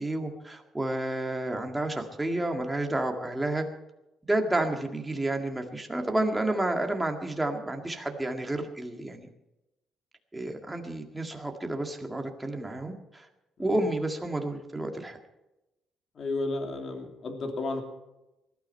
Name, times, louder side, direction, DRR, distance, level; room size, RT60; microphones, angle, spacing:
voice 1, 0.0-3.7 4.3-9.3 10.3-13.3 13.6-15.2, right 1 dB, 10° right, 3 dB, 1.9 m, -30 dB
voice 2, 16.2-17.8, left 2 dB, 45° left, 3 dB, 3.0 m, -32 dB
20.0 x 13.0 x 4.5 m, 0.95 s
cardioid pair, 135°, 0 cm